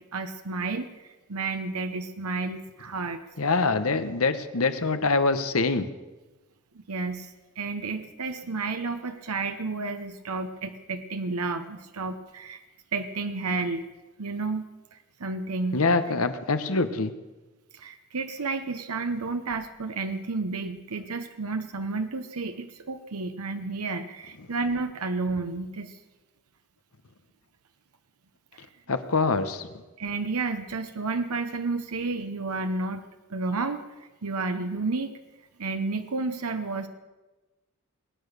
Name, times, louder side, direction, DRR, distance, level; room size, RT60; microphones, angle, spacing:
voice 1, 0.1-0.9 1.3-3.2 6.9-7.3 7.6-12.6 12.9-13.8 14.2-14.6 15.2-15.9 17.7-25.9 30.0-33.0 33.3-33.9 34.2-35.1 35.6-36.9, right 3 dB, 85° right, 8 dB, 0.9 m, -31 dB
voice 2, 3.4-5.9 15.7-17.1 28.9-29.7, left 3 dB, 75° left, 10 dB, 1.1 m, -24 dB
21.5 x 9.0 x 6.6 m, 1.2 s
head